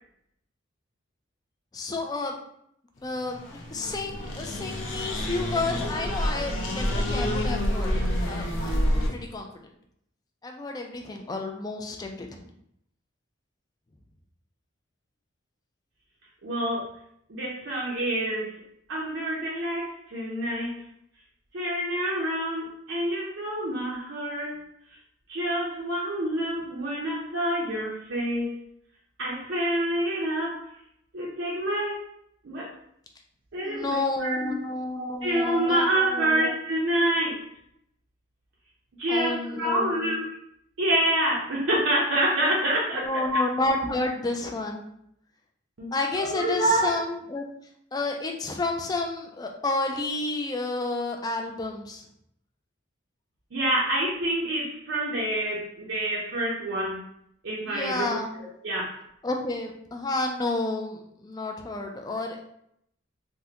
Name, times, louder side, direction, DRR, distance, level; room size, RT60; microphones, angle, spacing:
voice 1, 1.7-2.3 3.0-8.8 9.1-9.5 10.4-12.3 33.6-35.9 36.1-36.4 39.1-40.0 42.9-44.8 45.9-47.4 47.9-52.0 57.7-58.4 59.2-62.4, left 2 dB, 20° left, 3 dB, 0.3 m, -30 dB
sound 1, 3.2-9.1, equal, 75° left, 0.6 m, -28 dB
voice 2, 16.4-16.9 17.3-18.5 18.9-20.8 21.5-24.6 25.3-28.5 29.2-30.6 31.1-32.0 32.4-32.7 33.5-34.5 35.0-37.4 39.0-40.2 40.8-43.4 45.8-46.9 53.5-57.0 57.4-59.0, right 1 dB, 70° right, -5 dB, 0.6 m, -27 dB
3.5 x 2.1 x 2.8 m, 0.73 s
head